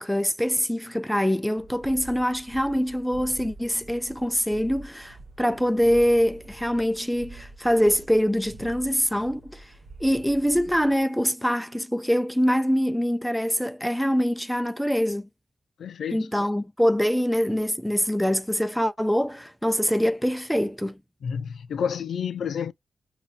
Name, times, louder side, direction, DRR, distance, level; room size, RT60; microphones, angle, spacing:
voice 1, 0.0-9.7 10.0-15.3 16.1-21.0, equal, ahead, 0.3 m, -24 dB
sound 1, 1.6-11.0, right 2 dB, 50° right, 0.7 m, -46 dB
voice 2, 15.8-16.3 21.2-22.7, left 7 dB, 75° left, 0.4 m, -30 dB
5.2 x 2.3 x 2.2 m
cardioid pair, 90°, 0 cm